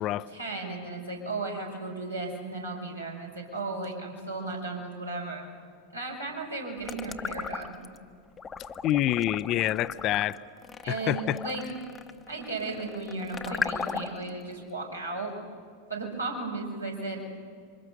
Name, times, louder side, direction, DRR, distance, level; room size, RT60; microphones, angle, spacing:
voice 1, 0.3-5.5 5.9-7.8 10.8-11.6 12.3-15.3 15.9-17.2, right 3 dB, 85° right, -2 dB, 5.7 m, -35 dB
sound 1, 6.8-8.0 8.4-14.3, left 6 dB, 20° left, 0.9 m, -36 dB
voice 2, 8.8-10.4 10.9-11.4, left 13 dB, 35° left, 16 dB, 0.6 m, -26 dB
27.5 x 24.5 x 7.0 m, 2.1 s
figure-of-eight pair, 90°, 0 cm